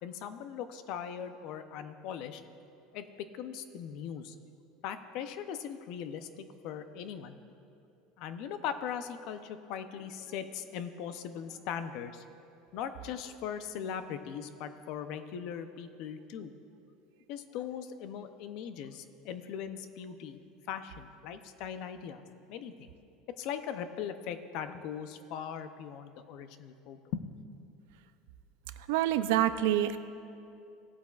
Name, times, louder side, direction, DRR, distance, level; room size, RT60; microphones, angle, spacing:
voice 1, 0.0-2.4 2.9-4.4 4.8-7.4 8.2-12.3 12.7-16.5 17.3-20.4 20.7-22.2 22.5-22.9 23.4-27.3, left 8 dB, 55° left, 10 dB, 0.6 m, -40 dB
voice 2, 28.8-30.0, right 12 dB, 75° right, 12 dB, 0.5 m, -27 dB
17.5 x 8.4 x 2.4 m, 2.6 s
cardioid pair, 160°, 0 cm